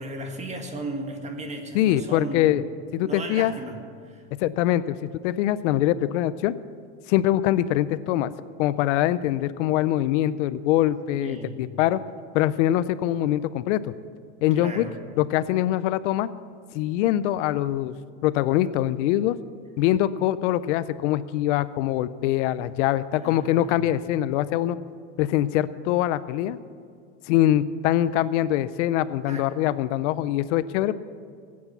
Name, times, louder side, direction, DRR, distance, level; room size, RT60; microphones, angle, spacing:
voice 1, 0.0-2.6 3.0-4.2 11.2-11.6 14.6-15.0 23.2-23.9 29.3-29.5, right 2 dB, 20° right, 4 dB, 1.8 m, -35 dB
voice 2, 1.7-2.6 2.9-3.5 4.4-6.5 7.1-8.3 8.6-12.0 12.3-13.9 14.4-14.8 15.2-16.3 16.7-18.0 18.2-19.4 19.8-24.8 25.2-26.6 27.3-30.9, left 13 dB, 85° left, 15 dB, 0.7 m, -23 dB
20.0 x 8.7 x 7.1 m, 2.1 s
supercardioid pair, 145°, 35 cm